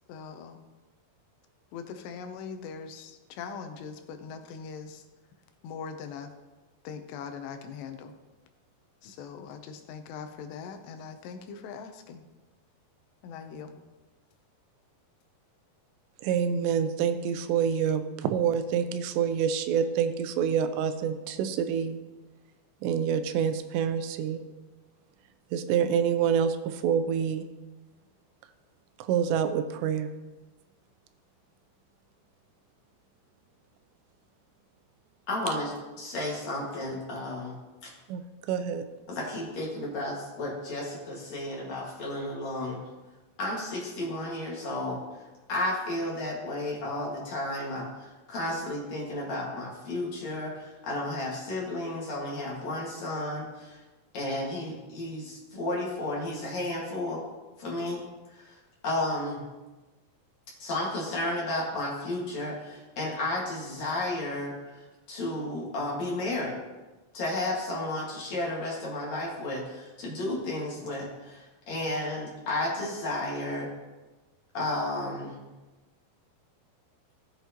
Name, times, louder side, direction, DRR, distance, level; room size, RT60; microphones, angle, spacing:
voice 1, 0.1-0.7 1.7-5.1 5.6-6.3 6.8-8.2 9.0-12.3 13.2-13.8, left 6 dB, 80° left, 7 dB, 2.9 m, -41 dB
voice 2, 16.2-22.0 22.8-24.4 25.5-27.5 29.1-30.1 38.1-38.9, right 8 dB, 90° right, 9 dB, 2.8 m, -27 dB
voice 3, 35.3-35.7 36.0-37.6 37.8-37.9 39.1-42.8 43.4-45.0 45.5-53.8 54.1-57.2 57.6-58.0 58.3-58.6 58.8-59.4 60.6-64.5 65.1-66.5 67.1-73.7 74.5-75.4, left 1 dB, 50° left, -3 dB, 2.5 m, -32 dB
15.5 x 7.9 x 2.9 m, 1.2 s
omnidirectional pair, 4.9 m